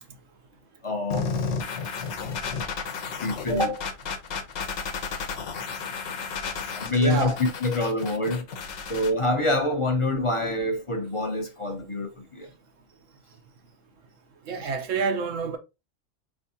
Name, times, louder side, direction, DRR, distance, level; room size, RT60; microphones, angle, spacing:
voice 1, 0.8-1.5 3.2-3.9 6.8-8.4 8.9-12.5, left 1 dB, 30° left, 0.6 m, -26 dB
sound 1, 1.1-9.1, left 5 dB, 65° left, 1.0 m, -33 dB
voice 2, 7.0-7.4 14.5-15.6, right 5 dB, 90° right, 1.2 m, -27 dB
4.6 x 3.4 x 2.7 m
omnidirectional pair, 1.3 m